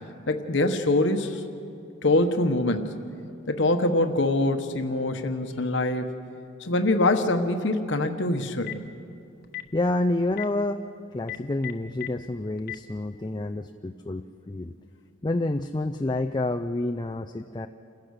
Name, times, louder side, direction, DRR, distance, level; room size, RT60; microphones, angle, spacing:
voice 1, 0.3-1.4 2.0-3.0 3.5-6.1 6.6-8.8, left 2 dB, 65° left, 7 dB, 1.2 m, -24 dB
Telephone, 8.4-8.9 9.4-9.7 10.3-10.4 11.2-12.1 12.6-12.8, left 16 dB, 50° left, 1.1 m, -34 dB
voice 2, 9.7-10.9 11.1-14.7 15.2-17.7, left 2 dB, 20° left, 5 dB, 0.4 m, -28 dB
28.0 x 16.0 x 6.6 m, 2.5 s
head